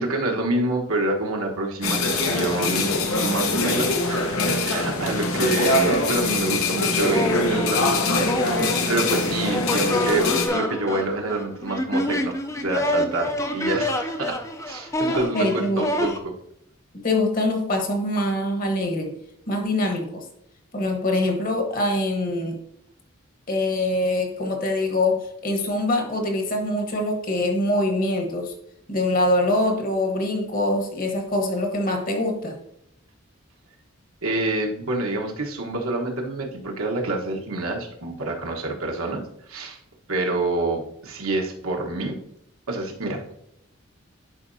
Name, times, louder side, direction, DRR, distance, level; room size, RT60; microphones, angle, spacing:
voice 1, 0.0-8.3 8.9-14.4 14.6-16.3 34.2-39.2 39.5-39.8 40.1-42.2 42.7-43.3, right 2 dB, 85° right, 0 dB, 1.3 m, -27 dB
sound 1, 1.8-10.5, left 2 dB, 85° left, 1.0 m, -23 dB
sound 2, 5.7-6.4 7.1-16.2, left 1 dB, 15° left, 0.4 m, -28 dB
voice 2, 15.1-15.8 17.0-19.2 19.5-20.2 20.7-22.6 23.5-28.5 28.9-32.6, left 1 dB, 40° left, 3 dB, 1.2 m, -24 dB
10.5 x 4.7 x 2.7 m, 0.76 s
head